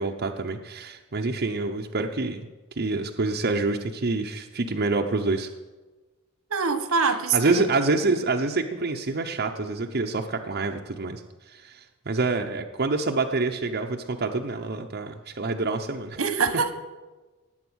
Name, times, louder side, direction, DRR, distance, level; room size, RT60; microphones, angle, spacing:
voice 1, 0.0-2.5 2.8-5.5 7.0-7.1 7.3-16.2, right 3 dB, 50° right, 2 dB, 0.8 m, -27 dB
voice 2, 6.5-7.6 16.2-16.7, right 5 dB, 80° right, 10 dB, 1.3 m, -24 dB
18.5 x 8.0 x 6.3 m, 1.2 s
head